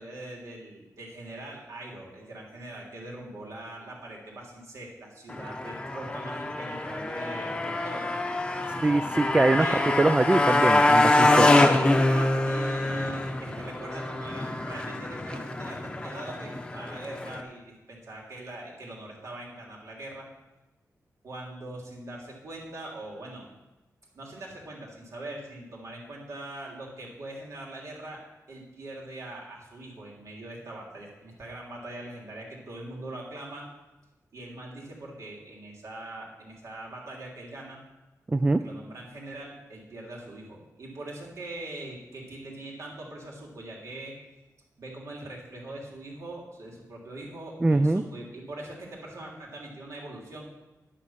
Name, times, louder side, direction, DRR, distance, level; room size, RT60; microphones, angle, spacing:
voice 1, 0.0-8.1 9.6-9.8 12.0-20.3 21.2-23.4 24.1-28.2 28.5-33.6 34.3-37.8 38.6-44.1 44.8-50.5, right 2 dB, 60° right, -2 dB, 3.3 m, -42 dB
Motorcycle, 5.3-17.4, left 2 dB, 15° left, 0.9 m, -25 dB
voice 2, 8.8-11.5 38.3-38.6 47.6-48.0, right 2 dB, 15° right, 10 dB, 0.3 m, -23 dB
11.0 x 9.3 x 5.8 m, 1.0 s
wide cardioid pair, 175°, 6 cm